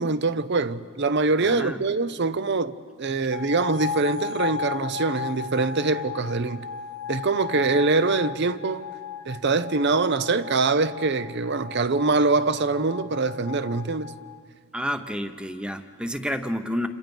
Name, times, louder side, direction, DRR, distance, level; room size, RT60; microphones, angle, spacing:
voice 1, 0.0-6.7 7.1-8.8 9.2-14.1, right 3 dB, 50° right, 0.7 m, -24 dB
voice 2, 1.4-1.8 14.7-16.9, equal, 5° right, 0.8 m, -30 dB
sound 1, 3.3-14.4, left 7 dB, 75° left, 1.4 m, -36 dB
28.0 x 26.5 x 5.4 m
head